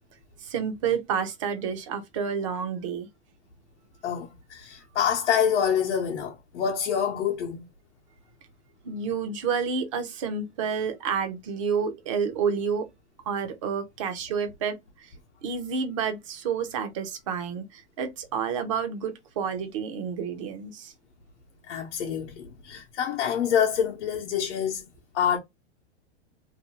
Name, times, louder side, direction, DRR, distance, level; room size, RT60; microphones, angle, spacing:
voice 1, 0.4-3.1 8.8-12.9 13.3-15.1 15.4-20.9, right 6 dB, 30° right, 0.4 m, -29 dB
voice 2, 4.0-7.6 21.7-24.9 25.1-25.4, left 8 dB, 85° left, 0.8 m, -26 dB
2.7 x 2.2 x 2.9 m
supercardioid pair, 170°, 34 cm